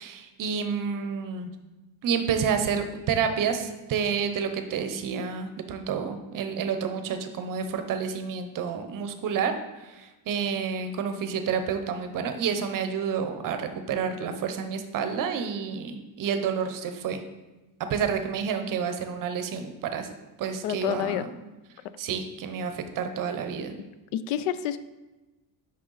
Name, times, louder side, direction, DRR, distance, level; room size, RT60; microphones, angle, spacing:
voice 1, 0.0-1.5 2.0-17.2 17.9-20.1 20.4-21.3 22.0-23.8, right 6 dB, 40° right, 7 dB, 0.7 m, -29 dB
voice 2, 20.6-21.3 24.1-24.8, left 10 dB, 85° left, 14 dB, 0.6 m, -28 dB
6.4 x 5.4 x 3.9 m, 1.1 s
cardioid pair, 150°, 48 cm